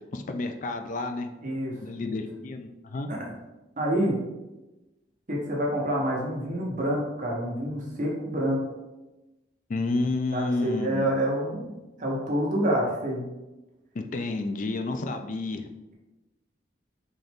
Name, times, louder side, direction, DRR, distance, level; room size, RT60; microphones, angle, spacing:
voice 1, 0.1-1.3 1.8-3.1 9.7-11.1 13.9-15.6, left 2 dB, 45° left, 7 dB, 0.4 m, -30 dB
voice 2, 1.4-1.7 2.1-2.2 3.1-3.2 3.8-4.2 5.3-8.6 10.3-11.7 12.0-13.2, equal, 45° right, -3 dB, 0.9 m, -27 dB
3.9 x 3.0 x 3.5 m, 1.0 s
head